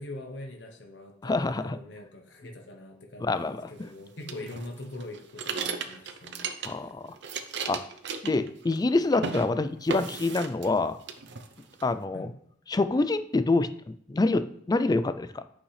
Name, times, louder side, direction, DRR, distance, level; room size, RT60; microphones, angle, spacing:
voice 1, 0.0-6.8 12.1-12.3, left 1 dB, 70° left, 3 dB, 1.0 m, -42 dB
voice 2, 1.2-1.8 3.2-3.7 6.6-7.0 7.7-7.8 8.2-11.0 11.8-12.3 12.7-15.4, left 3 dB, 20° left, 11 dB, 0.4 m, -26 dB
sound 1, 4.3-6.9 7.2-8.9 9.1-9.5 9.9-10.8 11.1-11.8, right 5 dB, 70° right, 0.7 m, -35 dB
8.3 x 5.5 x 3.3 m, 0.67 s
head